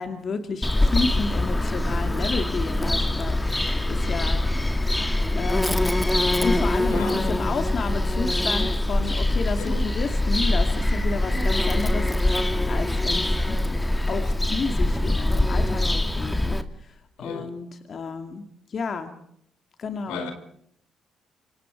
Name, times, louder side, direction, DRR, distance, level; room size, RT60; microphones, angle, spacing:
voice 1, 0.0-4.5 5.4-5.8 6.4-13.8 14.1-18.4 18.7-19.1 19.8-20.2, left 4 dB, 55° left, 2.6 m, -31 dB
Bird vocalization bird call bird song, 0.6-16.6, left 1 dB, 15° left, 2.4 m, -23 dB
voice 2, 6.8-7.4 9.6-9.9 11.3-11.6 11.9-12.2 17.2-17.5 20.1-20.3, left 3 dB, 85° left, 4.5 m, -34 dB
28.0 x 25.5 x 4.7 m
supercardioid pair, 55°, 0 cm